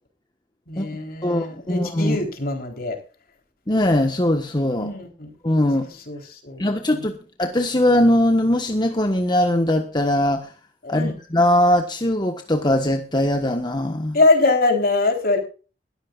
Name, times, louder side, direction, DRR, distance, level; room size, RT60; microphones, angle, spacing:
voice 1, 0.7-3.0 4.8-5.3 6.1-7.1 10.8-11.2 14.1-15.4, left 3 dB, 55° left, 5 dB, 3.8 m, -23 dB
voice 2, 1.2-2.2 3.7-4.9 5.4-5.9 6.6-10.5 10.9-14.2, left 1 dB, 25° left, 5 dB, 1.3 m, -20 dB
21.0 x 14.0 x 2.4 m, 0.36 s
head